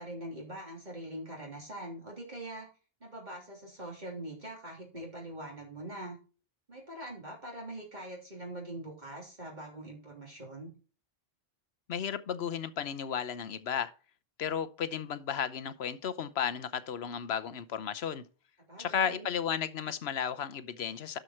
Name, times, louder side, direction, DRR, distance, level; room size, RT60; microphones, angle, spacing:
voice 1, 0.0-2.7 3.0-6.2 6.7-10.7 18.7-19.3, right 1 dB, 45° right, 3.4 m, -43 dB
voice 2, 11.9-13.9 14.4-18.2 18.8-21.2, left 8 dB, 80° left, 1.1 m, -34 dB
12.5 x 5.2 x 4.4 m
omnidirectional pair, 1.0 m